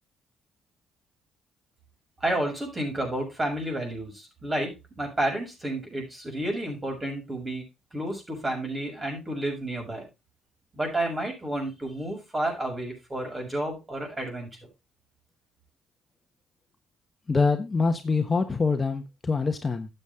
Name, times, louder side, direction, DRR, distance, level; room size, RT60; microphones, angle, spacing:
voice 1, 2.2-7.6 7.9-10.0 10.7-14.6, right 1 dB, 25° right, 1 dB, 7.0 m, -31 dB
voice 2, 17.3-19.9, left 4 dB, 25° left, 6 dB, 1.3 m, -25 dB
12.0 x 8.2 x 3.6 m, 0.25 s
supercardioid pair, 75°, 0 cm